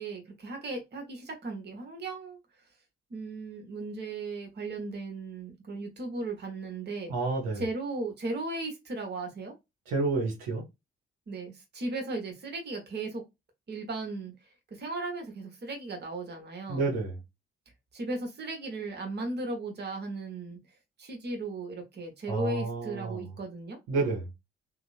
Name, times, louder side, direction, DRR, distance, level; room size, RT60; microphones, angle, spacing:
voice 1, 0.0-2.4 3.1-7.1 7.5-9.5 11.3-13.2 13.7-14.3 14.7-16.9 17.9-20.6 21.0-23.8, right 2 dB, 35° right, 1.1 m, -36 dB
voice 2, 7.1-7.6 9.9-10.6 16.7-17.1 22.3-23.2 23.9-24.2, right 3 dB, 60° right, 0.9 m, -29 dB
2.8 x 2.0 x 2.4 m
figure-of-eight pair, 40°, 31 cm